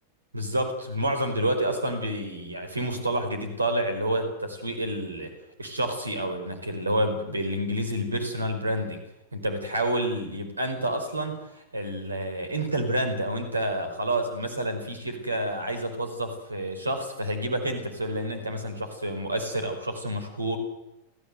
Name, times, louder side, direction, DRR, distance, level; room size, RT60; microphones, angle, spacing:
voice 1, 0.3-5.3 5.6-9.0 9.3-20.6, right 1 dB, 80° right, 7 dB, 4.9 m, -29 dB
30.0 x 14.5 x 8.0 m, 0.90 s
figure-of-eight pair, 90°, 0 cm